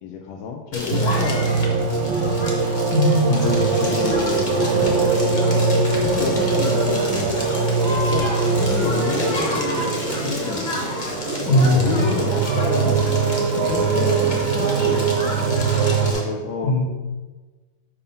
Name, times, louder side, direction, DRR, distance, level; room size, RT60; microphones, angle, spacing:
voice 1, 0.0-2.7 3.5-5.6 5.9-7.4 8.1-10.9 11.6-13.2 13.7-16.7, left 5 dB, 85° left, 2 dB, 1.4 m, -30 dB
Crackle, 0.7-16.2, left 1 dB, 30° left, 1.1 m, -29 dB
sound 1, 0.9-16.1, right 4 dB, 75° right, 1.6 m, -22 dB
voice 2, 2.9-3.9 11.5-12.1 16.6-16.8, left 1 dB, 65° left, -1 dB, 1.8 m, -19 dB
sound 2, 9.2-14.2, right 3 dB, 60° right, 1.0 m, -34 dB
5.5 x 4.3 x 5.3 m, 1.3 s
omnidirectional pair, 2.1 m